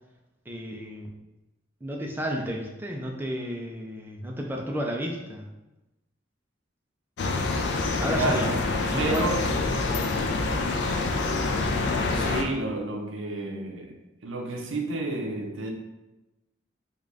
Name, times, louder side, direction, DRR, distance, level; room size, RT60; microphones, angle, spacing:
voice 1, 0.5-1.1 1.8-5.5 8.0-8.5 8.9-9.3, equal, 10° right, 0 dB, 0.4 m, -32 dB
sound 1, 7.2-12.4, left 3 dB, 60° left, 0.4 m, -26 dB
voice 2, 8.1-8.6 9.0-9.7 12.2-15.7, right 2 dB, 75° right, 2 dB, 0.6 m, -30 dB
3.7 x 2.5 x 3.2 m, 1.0 s
head